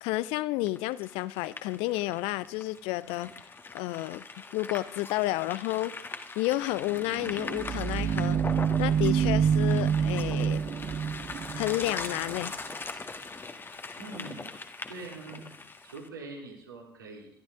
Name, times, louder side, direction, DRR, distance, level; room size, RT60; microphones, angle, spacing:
voice 1, 0.0-3.3 3.7-4.2 4.5-6.1 6.4-8.4 8.8-10.7 11.6-12.5, left 17 dB, 55° left, 0.5 m, -31 dB
sound 1, 0.6-16.1, left 3 dB, 20° left, 1.4 m, -41 dB
sound 2, 6.9-12.4, right 8 dB, 30° right, 0.5 m, -27 dB
voice 2, 14.0-14.5 14.9-15.5 15.8-17.3, right 3 dB, 75° right, 3.6 m, -43 dB
22.0 x 12.5 x 3.7 m
figure-of-eight pair, 65°, 12 cm